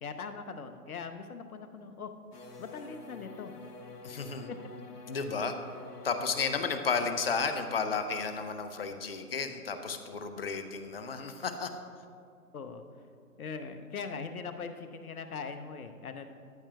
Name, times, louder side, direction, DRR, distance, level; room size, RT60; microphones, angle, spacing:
voice 1, 0.0-2.1 2.6-3.5 4.5-4.6 12.5-12.8 13.4-16.3, left 5 dB, 70° left, 9 dB, 0.9 m, -41 dB
sound 1, 2.3-6.9, left 4 dB, 85° left, 1.2 m, -48 dB
voice 2, 4.0-4.5 5.1-5.5 6.0-11.7, left 5 dB, 40° left, 8 dB, 0.6 m, -33 dB
14.0 x 8.4 x 2.3 m, 2.3 s
figure-of-eight pair, 145°, 46 cm